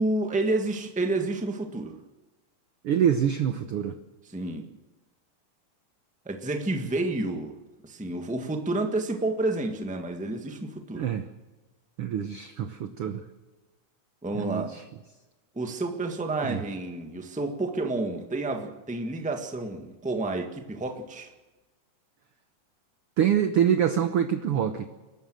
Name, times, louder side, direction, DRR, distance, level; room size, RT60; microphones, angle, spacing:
voice 1, 0.0-2.0 4.3-4.7 6.2-7.5 7.8-11.1 14.2-14.7 15.5-21.3, right 2 dB, 5° right, 4 dB, 0.6 m, -30 dB
voice 2, 2.8-4.0 10.9-11.3 12.0-13.2 14.3-14.8 16.4-16.6 23.2-24.9, right 9 dB, 65° right, 9 dB, 1.4 m, -25 dB
29.0 x 13.0 x 7.7 m, 1.1 s
omnidirectional pair, 3.7 m